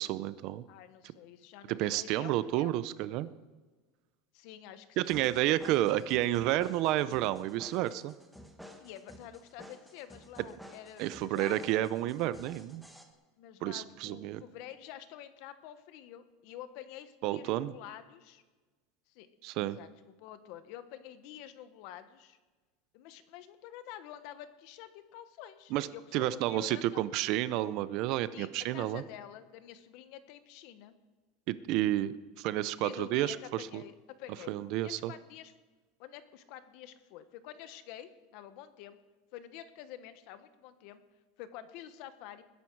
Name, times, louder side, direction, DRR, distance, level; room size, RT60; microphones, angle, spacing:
voice 1, 0.0-0.6 1.7-3.3 5.0-8.1 11.0-12.8 13.6-14.4 17.2-17.7 19.4-19.8 25.7-25.9 26.1-29.0 31.5-33.8 34.5-35.1, right 14 dB, 40° right, 16 dB, 0.5 m, -30 dB
voice 2, 0.7-2.7 4.3-5.9 8.8-11.7 13.4-18.4 19.1-19.9 20.2-22.4 22.9-27.0 28.3-30.9 32.7-35.5 36.0-39.0 39.3-41.0 41.4-42.4, left 11 dB, 50° left, 11 dB, 1.1 m, -48 dB
sound 1, 5.0-13.0, equal, ahead, 1.2 m, -53 dB
21.0 x 11.0 x 4.7 m, 1.3 s
supercardioid pair, 170°, 0 cm